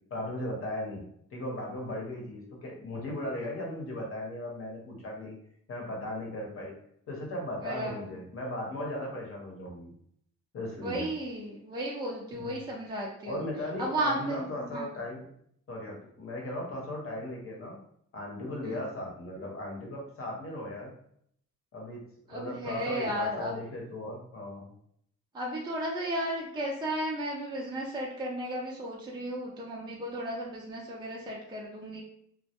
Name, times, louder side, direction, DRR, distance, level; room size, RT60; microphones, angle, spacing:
voice 1, 0.1-1.0 1.3-5.4 5.7-6.7 7.1-9.9 10.5-11.1 12.3-12.6 13.2-15.3 15.7-17.8 18.1-20.9 21.7-24.7, left 1 dB, 45° left, -1 dB, 0.9 m, -37 dB
voice 2, 7.6-8.1 10.8-13.4 13.8-14.9 18.6-18.8 22.3-23.5 25.3-32.0, right 1 dB, 15° right, -3 dB, 0.5 m, -34 dB
2.1 x 2.1 x 2.8 m, 0.68 s
cardioid pair, 90°, 30 cm